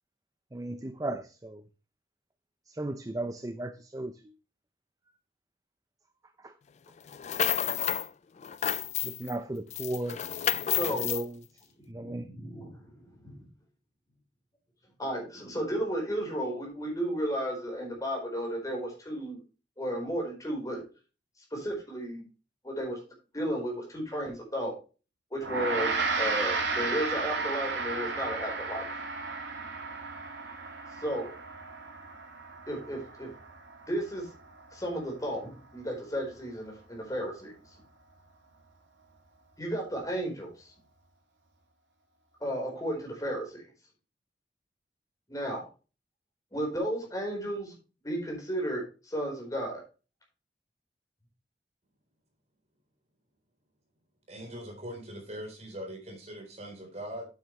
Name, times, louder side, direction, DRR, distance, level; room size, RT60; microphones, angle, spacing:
voice 1, 0.5-1.6 2.8-4.1 6.4-6.5 7.4-7.6 9.0-10.2 10.9-11.3 11.9-12.3, right 1 dB, 20° right, 10 dB, 0.5 m, -35 dB
sound 1, 7.1-8.1 8.4-9.3 9.7-11.2, left 11 dB, 40° left, 0.3 m, -30 dB
voice 2, 10.7-11.1 11.9-13.4 15.0-19.4 19.8-20.8 21.5-22.2 22.6-23.0 23.3-24.8 25.3-28.9 31.0-31.3 32.7-33.3 33.9-34.3 34.7-37.5 39.6-40.7 42.4-43.6 45.3-45.6 46.5-47.7 48.0-49.8, equal, 20° left, 0 dB, 4.3 m, -33 dB
Gong, 25.4-35.0, right 4 dB, 85° right, 2.7 m, -34 dB
voice 3, 54.3-57.3, equal, 35° right, 2 dB, 3.9 m, -41 dB
8.9 x 8.9 x 3.2 m, 0.32 s
head